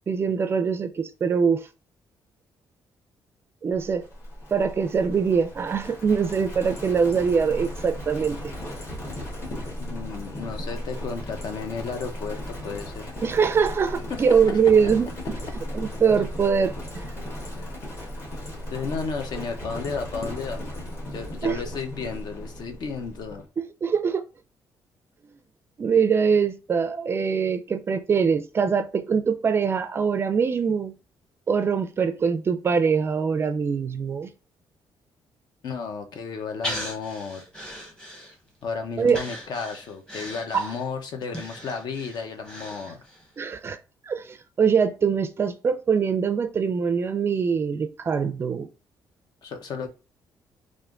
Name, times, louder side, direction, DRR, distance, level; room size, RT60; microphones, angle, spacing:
voice 1, 0.1-1.7 3.6-4.1 4.5-8.4 13.2-15.1 15.7-16.7 21.4-21.6 23.6-24.2 25.8-30.9 31.5-34.3 39.0-39.2 40.5-40.7 43.4-43.8 44.0-48.7, right 6 dB, 30° right, 0.4 m, -23 dB
Livestock farm animals working animals, 3.8-23.5, equal, 30° left, 1.2 m, -36 dB
voice 2, 9.8-13.1 14.1-14.2 17.6-17.7 18.7-20.6 21.1-23.4 35.6-37.4 38.6-43.0 49.4-49.9, left 5 dB, 60° left, 0.8 m, -33 dB
Breathing, 36.6-38.6 39.1-43.3 43.6-43.7, left 1 dB, 10° left, 1.0 m, -37 dB
3.3 x 2.5 x 3.6 m
cardioid pair, 160°, 8 cm